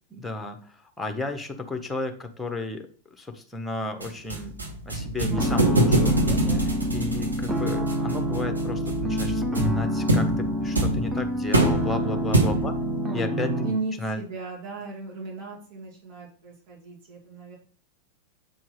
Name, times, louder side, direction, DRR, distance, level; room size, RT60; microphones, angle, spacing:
voice 1, 0.1-12.7 13.1-13.6 14.0-14.2, left 2 dB, 5° left, 6 dB, 1.3 m, -34 dB
sound 1, 4.0-12.9, right 1 dB, 80° right, 1.8 m, -25 dB
sound 2, 5.3-13.7, equal, 15° right, 1.2 m, -28 dB
voice 2, 12.5-13.2 13.6-17.6, right 3 dB, 50° right, -3 dB, 3.5 m, -36 dB
7.4 x 4.5 x 4.8 m, 0.42 s
figure-of-eight pair, 90°, 0 cm